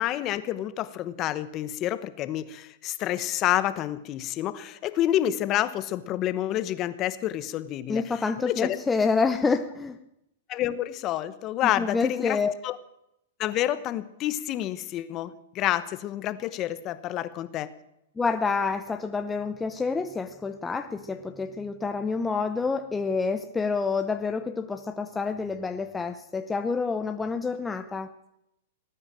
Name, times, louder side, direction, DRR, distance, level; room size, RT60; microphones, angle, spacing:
voice 1, 0.0-8.0 8.4-8.8 10.5-12.4 12.6-12.8 13.4-17.7, left 13 dB, 35° left, 13 dB, 1.1 m, -28 dB
voice 2, 7.9-10.0 11.6-12.5 18.2-28.1, left 4 dB, 10° left, 7 dB, 0.8 m, -28 dB
19.0 x 9.7 x 7.6 m, 0.82 s
hypercardioid pair, 135°, 0 cm